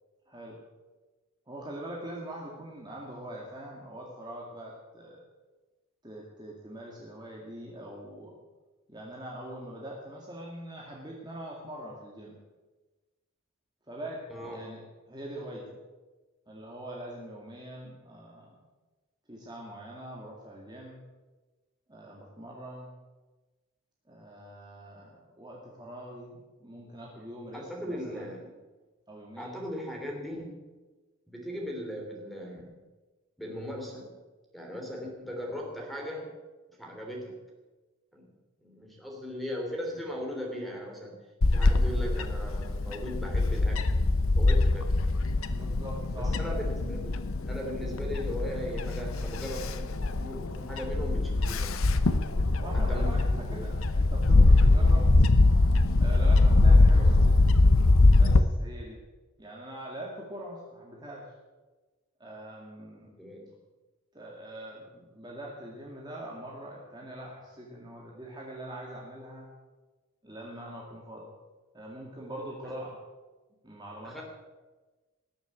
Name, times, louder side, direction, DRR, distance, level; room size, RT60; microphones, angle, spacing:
voice 1, 0.3-0.6 1.5-5.2 6.0-8.4 8.9-12.4 13.9-14.8 15.1-15.8 16.5-18.7 19.3-21.0 21.9-22.9 24.1-28.3 29.1-29.6 45.5-46.4 52.6-55.1 56.0-57.5 58.1-59.0 59.4-61.3 62.2-63.1 64.1-69.5 70.2-71.3 71.7-73.0 73.6-74.2, right 1 dB, 20° right, -3 dB, 2.2 m, -43 dB
voice 2, 14.3-14.8 27.5-28.5 29.4-30.7 31.3-32.8 33.4-34.1 34.5-36.3 36.7-37.4 38.1-38.3 38.6-43.9 44.3-44.9 46.2-51.8 52.7-53.7 57.0-57.1 63.0-63.5 74.0-74.2, equal, ahead, 0 dB, 3.0 m, -38 dB
Bird / Wind, 41.4-58.4, left 2 dB, 70° left, 0.8 m, -23 dB
19.0 x 7.2 x 8.4 m, 1.2 s
head